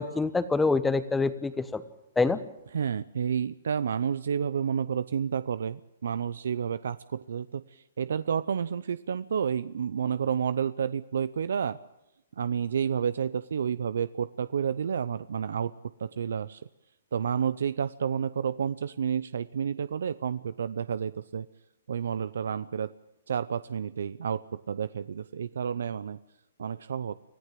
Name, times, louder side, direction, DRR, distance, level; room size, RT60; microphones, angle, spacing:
voice 1, 0.0-1.8 2.2-2.4, left 3 dB, 5° left, 13 dB, 1.1 m, -26 dB
voice 2, 2.7-11.8 12.4-15.7 16.0-16.6 17.1-21.5 21.9-22.9 23.3-26.2 26.6-27.1, right 7 dB, 75° right, 16 dB, 0.6 m, -30 dB
24.5 x 15.0 x 7.6 m, 0.92 s
hypercardioid pair, 145°, 0 cm